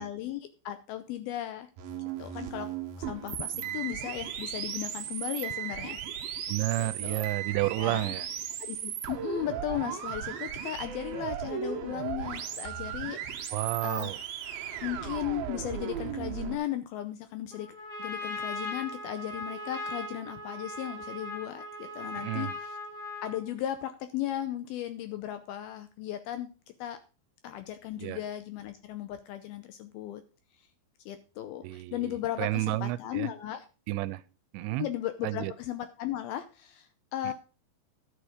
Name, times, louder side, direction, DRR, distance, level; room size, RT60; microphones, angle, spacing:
voice 1, 0.0-1.7 2.2-2.7 3.0-6.0 6.8-7.3 7.8-8.1 8.6-13.5 13.8-14.1 14.8-22.5 23.2-26.5 26.8-27.0 27.4-30.2 31.1-33.7 34.8-37.3, left 12 dB, 80° left, 10 dB, 2.3 m, -36 dB
sound 1, 1.8-16.6, right 9 dB, 65° right, 2.8 m, -36 dB
voice 2, 6.5-8.3 13.5-14.2 22.1-22.5 28.0-28.2 31.6-33.3 33.9-34.2 34.5-34.9 35.2-35.5 37.2-37.3, right 17 dB, 90° right, 15 dB, 3.0 m, -31 dB
Trumpet, 17.5-23.5, left 2 dB, 15° left, 3.3 m, -39 dB
11.5 x 6.7 x 5.0 m, 0.34 s
omnidirectional pair, 5.0 m